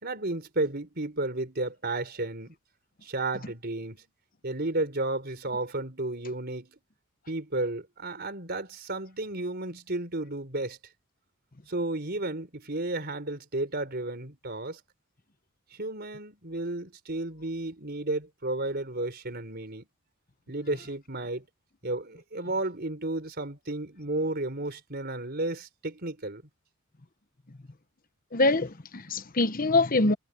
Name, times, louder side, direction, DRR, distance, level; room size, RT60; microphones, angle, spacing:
voice 1, 0.0-2.5 3.0-4.0 4.4-6.8 7.3-10.8 11.7-14.8 15.7-19.9 20.5-21.4 21.8-26.4, right 2 dB, 50° right, 4.6 m, -32 dB
voice 2, 28.3-30.1, left 2 dB, 40° left, 1.1 m, -24 dB
head